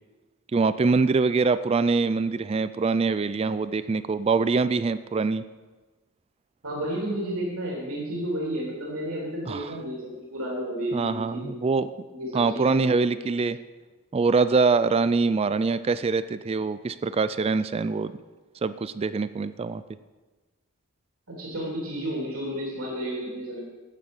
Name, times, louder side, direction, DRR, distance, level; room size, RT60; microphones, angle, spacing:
voice 1, 0.5-5.4 9.5-9.8 10.9-11.9 12.3-13.6 14.1-18.2 18.6-19.8, right 4 dB, 25° right, 14 dB, 0.3 m, -24 dB
voice 2, 6.6-11.5 12.1-13.2 21.4-23.6, right 1 dB, 70° right, -3 dB, 3.1 m, -32 dB
11.5 x 8.8 x 5.4 m, 1.2 s
head